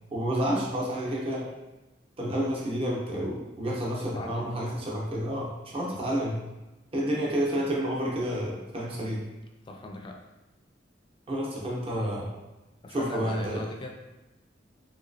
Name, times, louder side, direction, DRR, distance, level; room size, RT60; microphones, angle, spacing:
voice 1, 0.1-1.5 2.2-6.4 6.9-9.3 11.3-12.3 12.9-13.6, equal, 30° right, -3 dB, 0.6 m, -30 dB
voice 2, 4.1-4.5 5.9-6.0 9.7-10.2 12.8-13.9, left 1 dB, 30° left, 2 dB, 0.3 m, -39 dB
3.1 x 2.9 x 2.6 m, 1.0 s
head